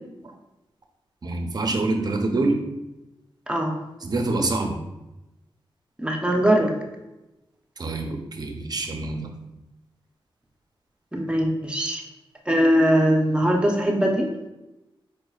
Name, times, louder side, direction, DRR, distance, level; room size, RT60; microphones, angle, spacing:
voice 1, 1.2-2.6 4.0-4.8 7.8-9.3, right 2 dB, 45° right, 4 dB, 0.6 m, -26 dB
voice 2, 6.0-6.7 11.1-12.0 12.5-14.3, equal, 10° right, 0 dB, 0.7 m, -21 dB
4.8 x 4.5 x 2.4 m, 0.98 s
wide cardioid pair, 115°, 10 cm